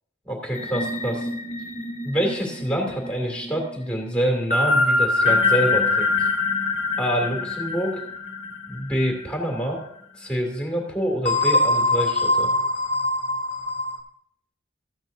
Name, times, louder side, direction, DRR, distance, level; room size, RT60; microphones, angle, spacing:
voice 1, 0.2-1.3 2.0-6.1 7.0-8.0 8.7-9.8 10.2-12.5, right 1 dB, 5° left, -1 dB, 2.4 m, -26 dB
sound 1, 0.5-9.4 9.8-10.0 11.2-14.0, left 2 dB, 35° left, 1.1 m, -24 dB
14.5 x 8.7 x 2.7 m, 0.70 s
head